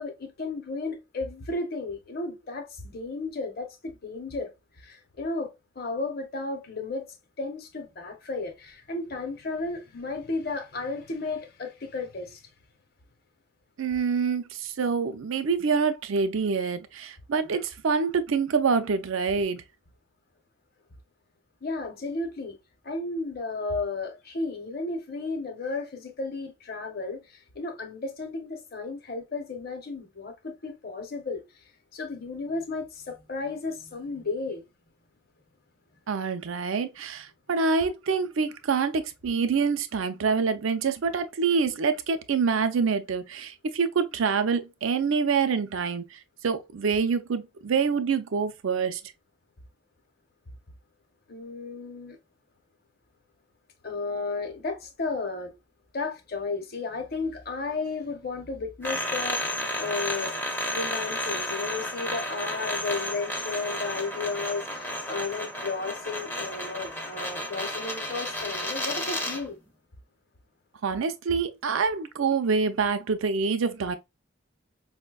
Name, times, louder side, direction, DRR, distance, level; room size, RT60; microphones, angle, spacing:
voice 1, 0.0-4.5 4.8-7.1 7.4-12.4 21.6-22.6 22.8-31.4 31.9-34.6 51.3-52.2 53.8-55.5 55.9-60.3 60.7-69.6, left 3 dB, 50° left, 0.8 m, -33 dB
voice 2, 13.8-19.6 36.1-49.0 70.8-74.0, right 5 dB, 75° right, 0.5 m, -26 dB
sound 1, 58.8-69.5, left 1 dB, 10° left, 0.5 m, -32 dB
5.1 x 2.2 x 2.2 m
head